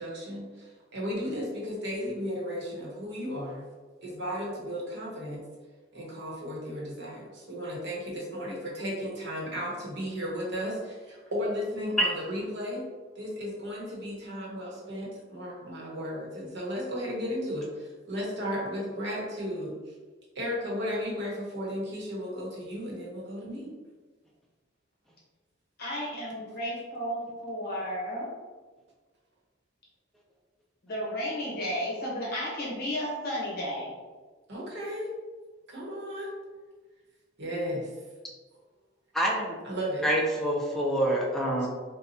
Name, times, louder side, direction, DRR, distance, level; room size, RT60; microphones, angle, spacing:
voice 1, 0.0-3.6 4.0-5.4 5.9-12.8 13.2-19.8 20.3-23.7 34.5-35.1 35.7-36.3 37.4-37.9 39.6-40.1 41.6-41.7, equal, 65° right, -3 dB, 0.9 m, -34 dB
voice 2, 25.8-28.3 30.8-33.9, equal, 55° left, -5 dB, 1.0 m, -33 dB
voice 3, 39.1-39.6 40.0-41.7, right 1 dB, ahead, -3 dB, 0.4 m, -26 dB
3.9 x 2.2 x 2.7 m, 1.4 s
head